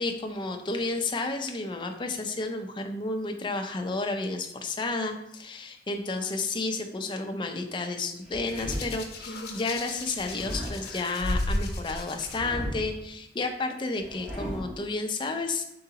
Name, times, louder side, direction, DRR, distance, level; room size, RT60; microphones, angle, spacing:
voice 1, 0.0-15.6, left 3 dB, 25° left, 4 dB, 0.5 m, -31 dB
sound 1, 8.2-9.1 10.1-11.0 12.1-13.0 14.0-14.9, equal, 5° right, 0.9 m, -36 dB
Hands, 8.5-12.4 13.4-13.6, left 1 dB, 60° left, 0.7 m, -34 dB
4.7 x 3.8 x 2.8 m, 0.77 s
head